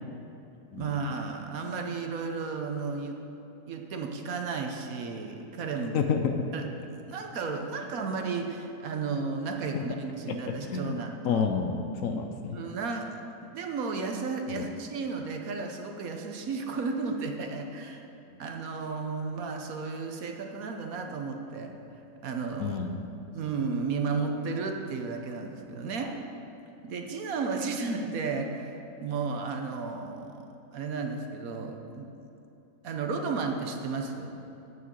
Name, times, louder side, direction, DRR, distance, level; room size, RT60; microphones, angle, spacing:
voice 1, 0.7-3.2 3.7-6.0 6.5-11.4 12.5-13.1 13.4-18.0 18.4-21.7 22.2-22.8 23.3-26.1 26.8-32.1 32.8-34.3, right 4 dB, 65° right, 3 dB, 1.2 m, -33 dB
voice 2, 5.9-6.3 9.7-9.8 10.3-10.4 10.7-11.0 11.2-12.6 14.5-14.7 22.6-23.0 26.0-26.1, left 6 dB, 65° left, 5 dB, 0.9 m, -29 dB
9.2 x 6.2 x 7.3 m, 2.9 s
omnidirectional pair, 1.7 m